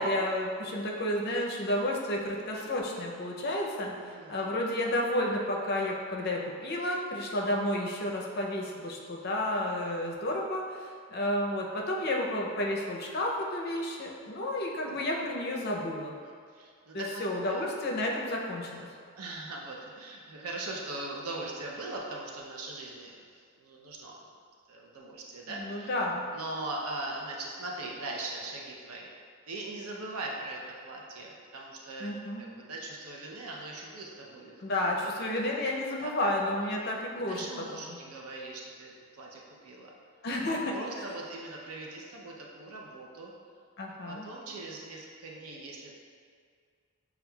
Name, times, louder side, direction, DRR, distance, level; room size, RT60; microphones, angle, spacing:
voice 1, 0.0-16.1 16.9-18.9 25.5-26.3 32.0-32.5 34.6-37.5 37.7-38.0 40.2-40.7 43.8-44.3, left 1 dB, 45° left, -1 dB, 0.5 m, -31 dB
voice 2, 3.9-4.5 14.8-15.0 16.2-17.2 17.5-17.6 19.1-24.2 24.7-25.9 26.3-29.1 29.5-32.1 32.4-34.6 35.0-35.3 36.0-36.2 37.1-39.9 40.7-43.3 44.0-46.0, right 2 dB, 85° right, -1 dB, 0.5 m, -40 dB
6.9 x 2.3 x 2.2 m, 2.1 s
head